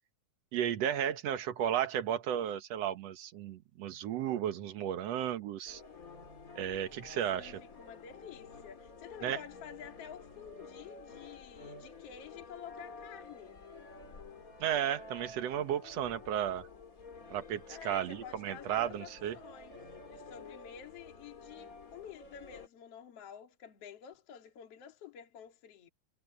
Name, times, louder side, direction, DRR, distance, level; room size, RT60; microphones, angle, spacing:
voice 1, 0.5-5.8 6.5-7.6 9.2-9.4 14.6-16.7 17.3-19.4, right 10 dB, 60° right, 1.8 m, -34 dB
sound 1, 5.7-22.7, left 3 dB, 25° left, 2.3 m, -51 dB
voice 2, 7.4-13.6 17.7-19.8 20.1-25.9, left 8 dB, 45° left, 3.1 m, -50 dB
omnidirectional pair, 4.3 m